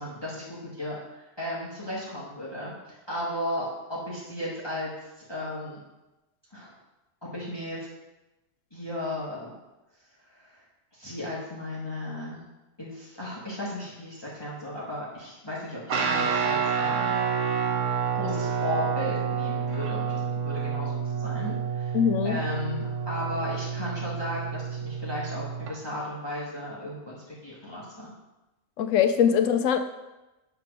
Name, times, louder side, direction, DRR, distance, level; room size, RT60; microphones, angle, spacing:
voice 1, 0.0-4.9 5.3-5.8 6.5-6.7 7.2-7.8 8.7-9.5 10.2-10.6 10.9-12.4 12.8-17.2 18.1-22.0 22.2-28.1, left 1 dB, 20° left, -7 dB, 1.7 m, -35 dB
Guitar, 15.9-25.7, right 6 dB, 75° right, 1.2 m, -29 dB
voice 2, 21.9-22.4 28.8-29.8, left 8 dB, 80° left, 9 dB, 1.0 m, -22 dB
8.8 x 3.4 x 6.1 m, 1.0 s
omnidirectional pair, 1.3 m